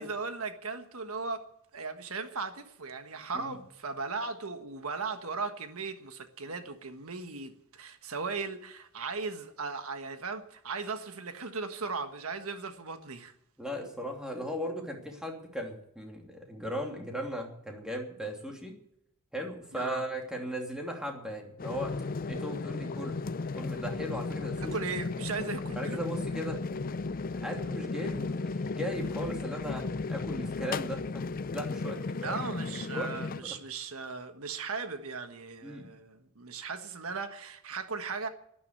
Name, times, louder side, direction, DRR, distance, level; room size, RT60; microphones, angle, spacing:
voice 1, 0.0-1.4 1.7-13.3 19.7-20.0 24.6-26.0 32.2-38.3, right 4 dB, 75° right, 8 dB, 1.5 m, -37 dB
voice 2, 13.6-18.7 19.3-21.9 22.3-23.3 23.5-24.7 25.7-26.6 27.3-31.3 31.5-32.4 32.9-33.5 35.6-35.9, equal, 5° right, 1 dB, 2.9 m, -37 dB
sound 1, 21.6-33.4, left 3 dB, 40° left, 0.5 m, -35 dB
12.0 x 11.0 x 9.7 m, 0.75 s
head